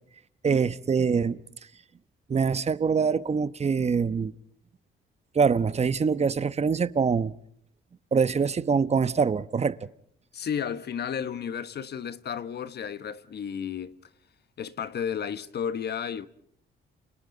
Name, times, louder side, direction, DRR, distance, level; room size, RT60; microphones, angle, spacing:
voice 1, 0.4-1.4 2.3-4.3 5.3-7.3 8.1-9.9, right 5 dB, 35° right, 1.0 m, -24 dB
voice 2, 10.3-14.0 14.6-16.3, left 8 dB, 55° left, 1.3 m, -33 dB
29.5 x 29.0 x 4.0 m
cardioid pair, 90°, 20 cm